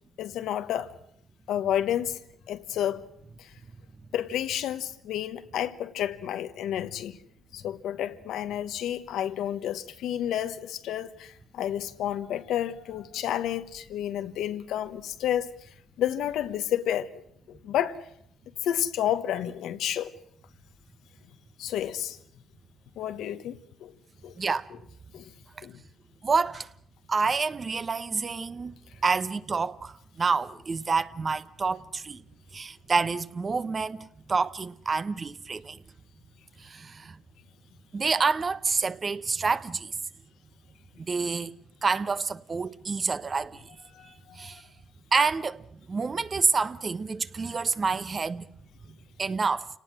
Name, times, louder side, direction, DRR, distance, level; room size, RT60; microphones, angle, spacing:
voice 1, 0.2-0.9 1.5-2.2 2.5-3.0 3.4-3.5 4.1-7.2 7.5-15.5 16.0-18.0 18.6-20.1 21.6-22.2 23.0-23.9 24.2-24.3 25.1-25.3 25.6-25.8 43.9-44.5, left 11 dB, 80° left, 1.2 m, -30 dB
voice 2, 24.4-24.7 25.6-25.7 26.2-26.7 27.1-28.8 29.0-32.2 32.5-35.8 36.6-37.2 37.9-39.9 41.0-41.5 41.8-43.7 44.0-44.6 45.1-48.4 48.9-49.7, right 4 dB, 35° right, 0.9 m, -28 dB
29.0 x 18.5 x 7.6 m
cardioid pair, 90°, 0 cm